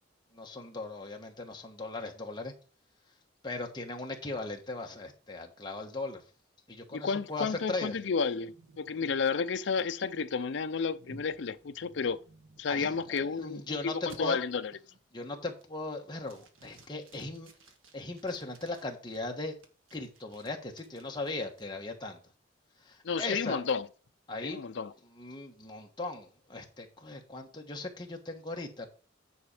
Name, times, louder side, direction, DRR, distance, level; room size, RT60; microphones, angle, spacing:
voice 1, 0.3-2.5 3.4-6.2 6.7-8.0 12.7-14.4 15.1-17.5 17.9-19.5 19.9-22.2 22.8-23.6 24.3-24.6 25.1-28.9, left 2 dB, 20° left, 1.2 m, -38 dB
voice 2, 6.9-12.2 12.6-14.7 23.0-23.9 24.4-24.9, left 5 dB, 65° left, 0.5 m, -32 dB
sound 1, 7.3-13.6 14.1-14.2 14.7-15.1 15.5-15.9 16.2-19.2 19.6-21.6, right 2 dB, 90° right, 1.5 m, -58 dB
9.7 x 4.2 x 4.9 m
head